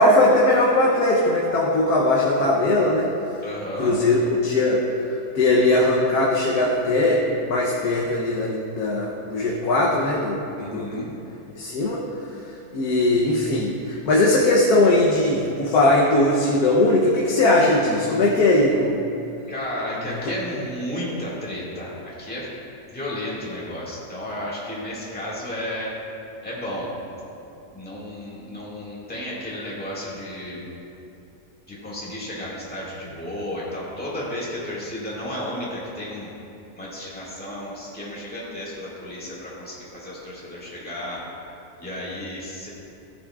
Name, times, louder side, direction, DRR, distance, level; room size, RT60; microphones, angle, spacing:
voice 1, 0.0-3.1 3.8-7.2 7.5-11.0 11.5-12.0 12.7-19.0, left 2 dB, 85° left, -3 dB, 1.4 m, -20 dB
voice 2, 3.4-4.0 10.5-11.1 19.5-22.5 22.9-26.0 26.4-26.9 27.7-30.7 31.7-36.3 36.8-41.2 41.5-42.7, left 1 dB, 5° left, -7 dB, 2.0 m, -33 dB
14.5 x 8.5 x 2.4 m, 2.8 s
omnidirectional pair, 1.6 m